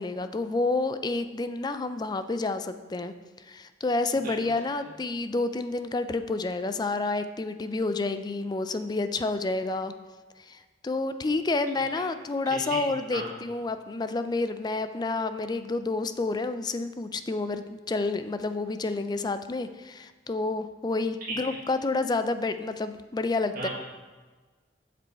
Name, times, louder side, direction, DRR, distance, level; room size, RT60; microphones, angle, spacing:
voice 1, 0.0-3.1 3.5-9.9 10.5-23.7, left 3 dB, 25° left, 10 dB, 0.4 m, -29 dB
voice 2, 12.5-12.8 13.1-13.3 21.3-21.4 23.5-23.7, right 3 dB, 55° right, -4 dB, 1.8 m, -34 dB
7.8 x 6.9 x 4.2 m, 1.3 s
head